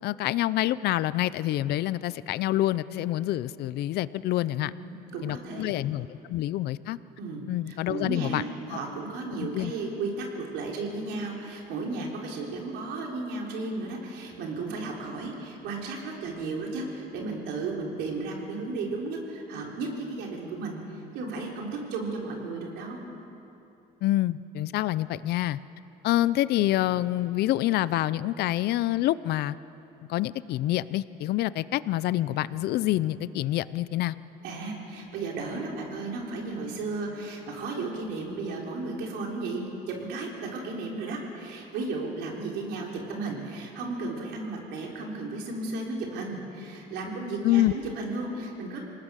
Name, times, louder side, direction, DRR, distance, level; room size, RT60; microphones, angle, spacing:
voice 1, 0.0-4.7 5.2-7.0 7.5-8.4 8.7-8.8 9.4-9.7 24.0-25.6 26.0-29.6 30.1-34.1 47.4-47.7, left 15 dB, 75° left, 17 dB, 0.6 m, -27 dB
voice 2, 4.6-5.8 7.2-23.1 34.4-48.8, right 3 dB, 85° right, -1 dB, 4.1 m, -34 dB
27.0 x 18.5 x 6.5 m, 2.9 s
cardioid pair, 110°, 17 cm